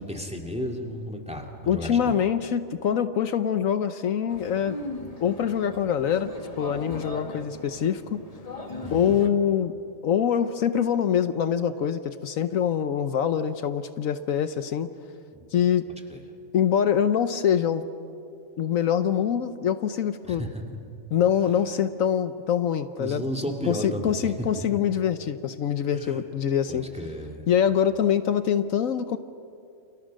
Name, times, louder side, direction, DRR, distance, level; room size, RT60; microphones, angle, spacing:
voice 1, 0.0-2.2 8.8-9.2 15.3-15.5 16.1-16.2 20.3-20.6 23.0-24.5 25.9-26.2 26.7-27.4, equal, 5° right, 2 dB, 2.6 m, -33 dB
voice 2, 1.7-4.8 5.2-6.3 6.6-8.2 8.9-9.7 10.0-14.9 15.5-15.8 16.5-17.8 18.6-20.4 21.1-23.2 23.7-26.9 27.5-29.2, left 8 dB, 75° left, 11 dB, 1.2 m, -24 dB
sound 1, 4.3-9.3, left 1 dB, 25° left, 1.7 m, -38 dB
29.0 x 29.0 x 6.4 m, 2.5 s
omnidirectional pair, 1.4 m